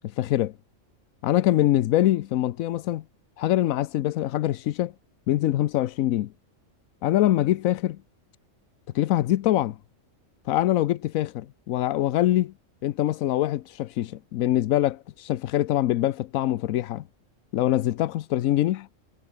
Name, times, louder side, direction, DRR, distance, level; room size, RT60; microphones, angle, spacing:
voice 1, 0.0-0.5 1.2-3.0 3.4-4.9 5.3-6.3 7.0-8.0 8.9-9.8 10.5-12.5 12.8-17.0 17.5-18.9, left 14 dB, 90° left, 1.0 m, -24 dB
omnidirectional pair, 1.4 m